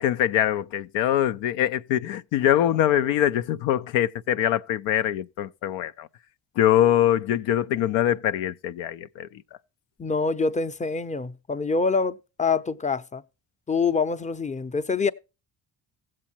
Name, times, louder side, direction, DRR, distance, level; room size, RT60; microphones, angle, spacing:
voice 1, 0.0-6.1 6.6-9.4, left 11 dB, 85° left, 0.6 m, -23 dB
voice 2, 10.0-13.2 13.7-15.1, left 4 dB, 15° left, 0.6 m, -25 dB
16.0 x 7.5 x 2.9 m
supercardioid pair, 55°, 43 cm